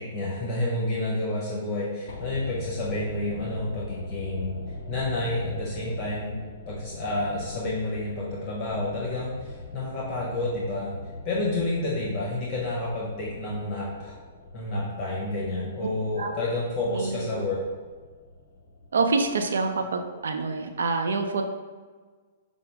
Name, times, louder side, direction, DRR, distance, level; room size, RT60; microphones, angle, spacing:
voice 1, 0.0-4.6 4.9-6.3 6.7-10.9 11.2-14.1 14.5-17.6, left 2 dB, 30° left, -5 dB, 1.2 m, -29 dB
sound 1, 2.1-20.3 20.5-20.6, left 2 dB, 70° left, 0.6 m, -41 dB
voice 2, 16.9-17.4 18.9-21.4, right 4 dB, 75° right, 5 dB, 0.5 m, -26 dB
5.5 x 2.0 x 3.5 m, 1.5 s
hypercardioid pair, 120°, 0 cm